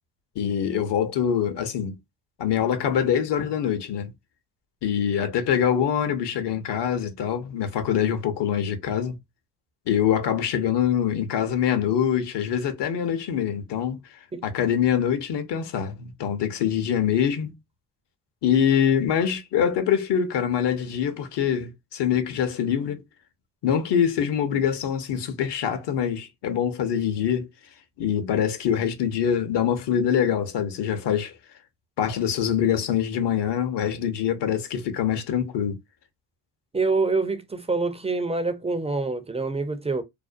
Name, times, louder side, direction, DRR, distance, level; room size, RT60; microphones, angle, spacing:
voice 1, 0.4-1.9 2.4-4.1 4.8-9.2 9.9-14.0 14.4-17.5 18.4-23.0 23.6-27.5 28.0-31.3 32.0-35.8, left 8 dB, 55° left, 0.7 m, -24 dB
voice 2, 36.7-40.0, right 3 dB, 15° right, 0.4 m, -26 dB
2.5 x 2.1 x 2.4 m
hypercardioid pair, 50°, 49 cm